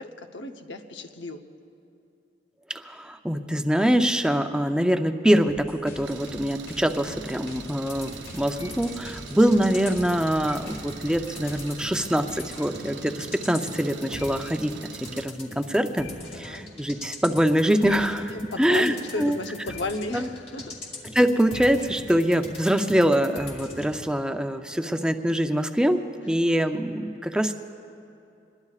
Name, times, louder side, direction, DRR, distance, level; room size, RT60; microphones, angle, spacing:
voice 1, 0.0-1.4 12.8-13.3 16.3-16.6 18.5-20.8 26.6-26.8, left 2 dB, 85° left, 5 dB, 0.9 m, -34 dB
voice 2, 2.7-19.4 20.1-20.3 21.1-27.5, equal, 5° right, 6 dB, 0.6 m, -24 dB
sound 1, 5.5-11.9, left 1 dB, 55° left, 1.4 m, -47 dB
Engine, 6.0-15.3, right 5 dB, 90° right, 0.7 m, -42 dB
sound 2, 7.8-24.0, left 2 dB, 35° left, 2.0 m, -42 dB
25.5 x 21.5 x 2.4 m, 2.6 s
head